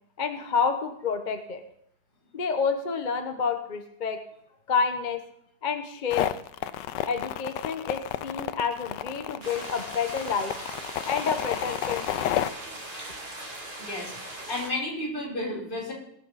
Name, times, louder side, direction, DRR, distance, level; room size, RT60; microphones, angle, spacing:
voice 1, 0.2-1.6 2.3-4.2 4.7-5.2 5.6-6.4 7.1-10.5 11.1-12.3, left 5 dB, 35° left, 7 dB, 0.8 m, -29 dB
sound 1, 6.1-12.5, left 12 dB, 75° left, 1.2 m, -31 dB
sound 2, 9.4-14.7, right 1 dB, 30° right, 2.7 m, -40 dB
voice 2, 13.8-14.1 14.5-15.9, left 1 dB, 60° left, -4 dB, 4.7 m, -32 dB
21.0 x 7.4 x 4.1 m, 0.73 s
omnidirectional pair, 2.0 m